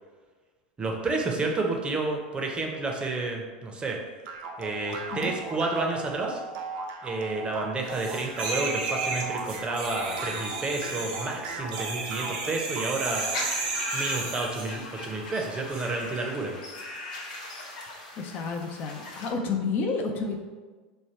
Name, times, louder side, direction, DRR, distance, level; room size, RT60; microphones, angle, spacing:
voice 1, 0.8-4.0 4.6-6.4 7.0-13.2 13.9-16.6, right 3 dB, 20° right, 1 dB, 0.6 m, -30 dB
sound 1, 4.2-13.6, right 4 dB, 60° right, 0.5 m, -38 dB
sound 2, 7.9-14.8 15.7-15.9, right 3 dB, 75° right, 1.0 m, -33 dB
sound 3, 13.0-19.3, left 2 dB, 75° left, 0.9 m, -39 dB
voice 2, 18.2-20.4, left 4 dB, 45° left, 2 dB, 0.5 m, -30 dB
3.3 x 2.2 x 4.2 m, 1.4 s
hypercardioid pair, 95°, 5 cm